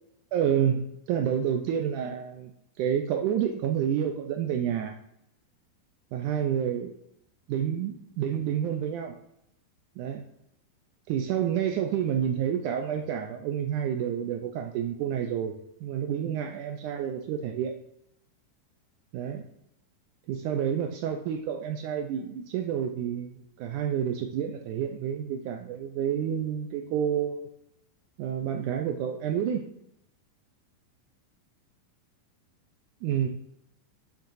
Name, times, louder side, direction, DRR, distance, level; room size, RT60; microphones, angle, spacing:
voice 1, 0.3-2.5 2.8-4.9 6.1-6.9 7.5-9.1 10.0-10.2 11.1-15.5 15.8-17.7 19.1-19.4 20.3-23.3 23.6-27.5 28.2-29.7 33.0-33.3, right 9 dB, 80° right, 4 dB, 1.8 m, -29 dB
9.1 x 7.1 x 2.6 m, 0.77 s
omnidirectional pair, 4.1 m